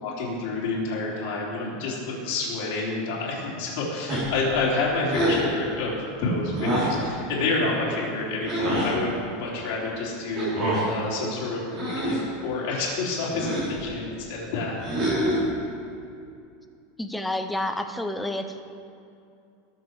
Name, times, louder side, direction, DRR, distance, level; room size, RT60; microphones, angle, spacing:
voice 1, 0.0-14.8, left 3 dB, 50° left, -5 dB, 3.8 m, -28 dB
sound 1, 4.1-4.5 5.1-5.5 6.5-7.0 8.5-8.9 10.4-10.9 11.7-12.3 13.3-13.8 14.8-15.5, right 1 dB, 25° right, 3.4 m, -26 dB
voice 2, 17.0-18.6, left 1 dB, 5° left, 6 dB, 0.5 m, -29 dB
20.0 x 7.2 x 4.8 m, 2.5 s
supercardioid pair, 170°, 0 cm